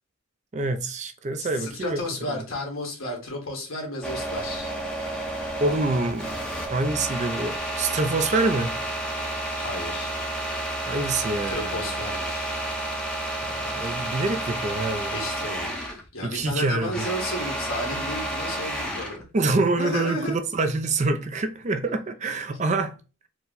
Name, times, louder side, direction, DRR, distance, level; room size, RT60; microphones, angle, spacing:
voice 1, 0.5-2.0 5.6-6.3 6.7-8.8 10.9-11.8 13.4-15.2 16.2-17.0 19.3-22.9, right 3 dB, 35° right, 0.4 m, -26 dB
voice 2, 1.4-4.7 9.5-10.2 11.5-12.7 13.8-13.9 15.1-19.2 19.8-20.4, left 1 dB, 75° left, 1.7 m, -33 dB
sound 1, 4.0-16.0 16.4-19.2, right 1 dB, 5° left, 0.7 m, -31 dB
4.4 x 2.2 x 3.8 m
head